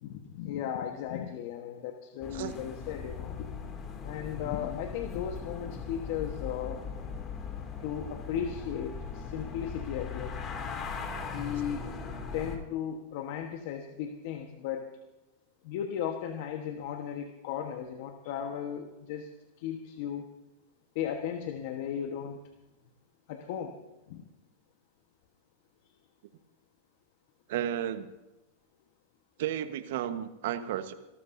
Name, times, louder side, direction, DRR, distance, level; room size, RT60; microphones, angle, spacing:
voice 1, 0.0-3.5 4.0-6.8 7.8-10.4 11.2-11.9 12.3-14.9 15.6-19.3 19.6-20.3 20.9-22.4 23.3-23.8 24.1-24.2, left 9 dB, 60° left, 5 dB, 1.3 m, -36 dB
sound 1, 2.2-12.6, left 5 dB, 30° left, 2.5 m, -39 dB
voice 2, 27.5-28.1 29.4-30.9, right 11 dB, 65° right, 10 dB, 1.2 m, -33 dB
27.0 x 13.5 x 2.7 m, 1.0 s
hypercardioid pair, 115°, 0 cm